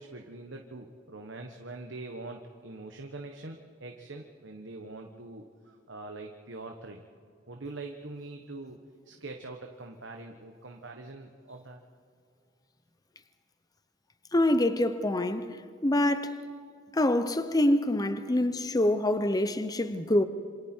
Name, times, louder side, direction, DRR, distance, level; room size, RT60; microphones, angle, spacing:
voice 1, 0.0-7.0 7.5-8.8 9.0-11.8, right 2 dB, 70° right, 1.3 m, -43 dB
voice 2, 14.3-15.5 15.8-16.4 16.9-20.2, left 1 dB, 20° left, 0.7 m, -25 dB
27.5 x 26.0 x 4.5 m
head